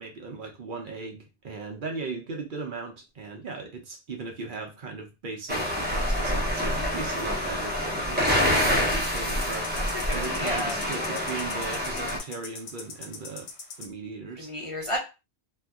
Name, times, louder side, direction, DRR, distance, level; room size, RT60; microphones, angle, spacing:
voice 1, 0.0-9.7 10.1-13.5 13.8-14.5, right 4 dB, 55° right, 3 dB, 0.7 m, -37 dB
sound 1, 5.5-12.2, equal, 10° right, 0.6 m, -27 dB
sound 2, 8.3-13.9, left 5 dB, 90° left, 0.9 m, -42 dB
voice 2, 8.6-9.0 9.7-9.8 10.1-10.8 14.4-15.0, equal, 35° left, -2 dB, 0.6 m, -32 dB
2.6 x 2.2 x 3.4 m, 0.28 s
omnidirectional pair, 1.1 m